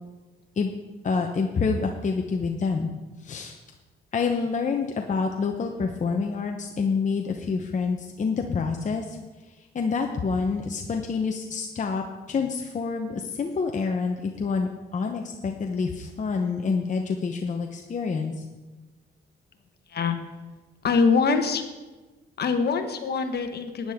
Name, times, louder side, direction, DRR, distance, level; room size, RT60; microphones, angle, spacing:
voice 1, 1.0-2.9 3.2-3.6 4.1-9.2 9.6-18.5, left 5 dB, 40° left, 3 dB, 0.9 m, -27 dB
voice 2, 20.8-21.6 22.4-23.9, left 5 dB, 55° left, 7 dB, 1.3 m, -23 dB
12.5 x 9.6 x 3.6 m, 1.2 s
cardioid pair, 90°, 20 cm